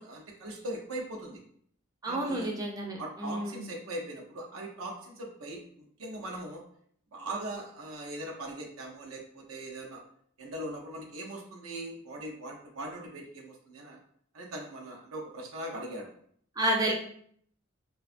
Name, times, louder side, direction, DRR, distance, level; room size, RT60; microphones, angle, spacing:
voice 1, 0.0-1.4 2.0-2.5 3.0-6.6 7.1-10.0 10.4-14.0 14.3-16.1 16.8-16.9, right 1 dB, 75° right, 0 dB, 0.5 m, -40 dB
voice 2, 2.0-3.7 16.6-16.9, right 1 dB, 15° right, 0 dB, 0.4 m, -30 dB
2.5 x 2.2 x 2.4 m, 0.62 s
head